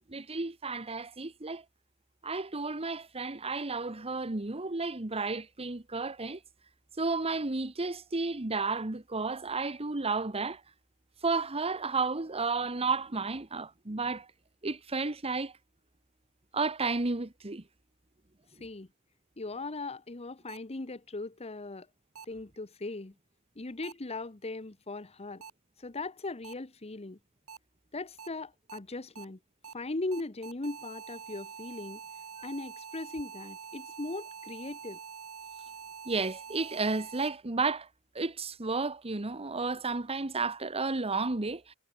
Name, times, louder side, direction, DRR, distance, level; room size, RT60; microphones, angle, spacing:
voice 1, 0.1-1.6 2.2-6.4 7.0-10.6 11.2-14.3 14.6-15.5 16.5-17.6 36.0-37.9 38.1-41.7, right 3 dB, 30° right, 1.2 m, -32 dB
voice 2, 19.4-21.9 22.3-23.1 23.6-25.4 25.8-27.2 27.9-29.4 29.7-32.0 32.4-35.0, left 2 dB, 30° left, 1.0 m, -39 dB
sound 1, 20.5-20.6 22.2-22.3 23.8-23.9 25.4-25.5 26.4-26.5 27.5-27.6 28.2-28.3 28.7-28.8 29.2-29.3 29.6-29.7 30.1-37.3, right 6 dB, 80° right, 2.2 m, -45 dB
head